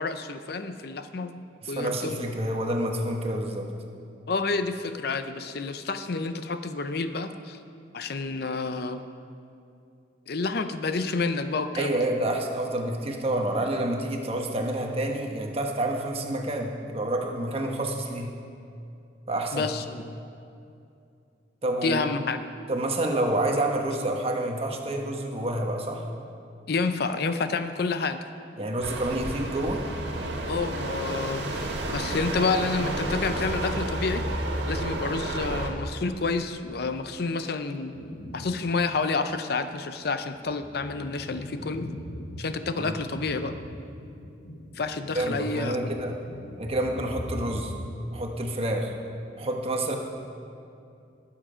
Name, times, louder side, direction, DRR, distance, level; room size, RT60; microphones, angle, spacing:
voice 1, 0.0-1.3 1.7-2.2 4.3-7.6 7.9-9.0 10.3-12.0 19.5-20.0 21.8-22.4 26.7-28.2 30.5-34.2 34.7-38.0 38.3-41.9 42.4-43.5 44.7-45.9, left 4 dB, 60° left, 9 dB, 0.6 m, -29 dB
voice 2, 1.6-3.7 11.7-18.3 19.3-19.7 21.6-22.0 22.7-26.1 28.6-29.8 42.8-43.0 45.1-46.2 46.6-47.7 48.1-48.9 49.4-50.0, right 1 dB, 35° right, 2 dB, 1.2 m, -28 dB
sound 1, 28.8-35.7, right 1 dB, 75° right, 1.6 m, -31 dB
sound 2, 37.9-38.8 39.2-39.3 40.0-47.9, left 1 dB, 75° left, 1.0 m, -40 dB
19.5 x 7.4 x 5.1 m, 2.6 s
head